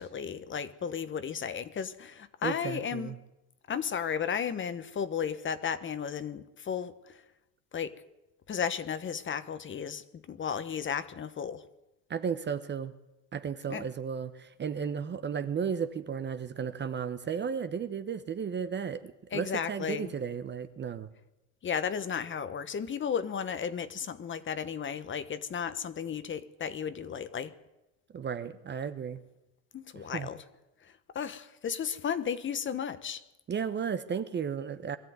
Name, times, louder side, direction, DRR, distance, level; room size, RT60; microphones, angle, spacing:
voice 1, 0.0-3.1 3.7-7.2 7.7-8.0 8.5-11.7 13.7-13.9 19.3-20.1 21.6-27.5 29.7-30.4 30.8-33.2, left 7 dB, 25° left, 1.1 m, -34 dB
voice 2, 2.4-3.2 12.1-12.9 13.3-21.1 28.1-29.2 30.1-30.3 33.5-35.0, right 7 dB, 25° right, 0.9 m, -34 dB
21.5 x 14.0 x 9.4 m
supercardioid pair, 125°, 44 cm